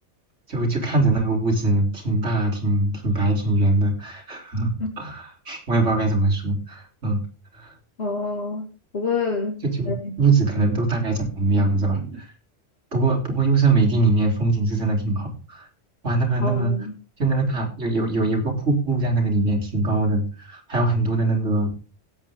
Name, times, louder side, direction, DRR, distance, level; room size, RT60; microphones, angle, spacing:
voice 1, 0.5-7.2 7.5-7.7 9.6-12.3 12.9-15.7 16.0-16.7 17.2-21.9, right 2 dB, 75° right, 0 dB, 4.0 m, -22 dB
voice 2, 8.0-8.7 8.9-10.1 16.4-16.9, left 4 dB, 60° left, 0 dB, 2.4 m, -27 dB
17.5 x 8.3 x 3.6 m, 0.36 s
omnidirectional pair, 1.3 m